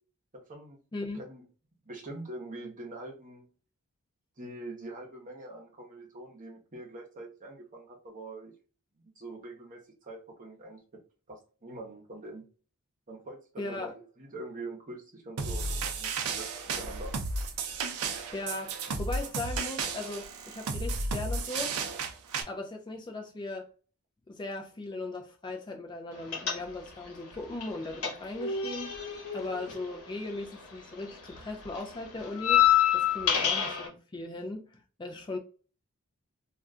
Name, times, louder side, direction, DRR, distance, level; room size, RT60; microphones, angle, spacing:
voice 1, 0.3-0.8 1.1-1.4 1.8-3.5 4.4-8.5 9.2-11.0 11.3-12.4 13.1-16.5 16.8-17.2, right 2 dB, 35° right, 0.8 m, -44 dB
voice 2, 13.6-13.9 18.3-21.8 22.4-23.7 24.3-34.7 35.0-35.4, left 2 dB, 20° left, 0.3 m, -38 dB
sound 1, 15.4-22.4, right 4 dB, 70° right, 0.5 m, -33 dB
sound 2, 26.3-27.1 27.3-30.7 31.0-33.9, left 10 dB, 70° left, 1.0 m, -27 dB
2.4 x 2.2 x 3.6 m
head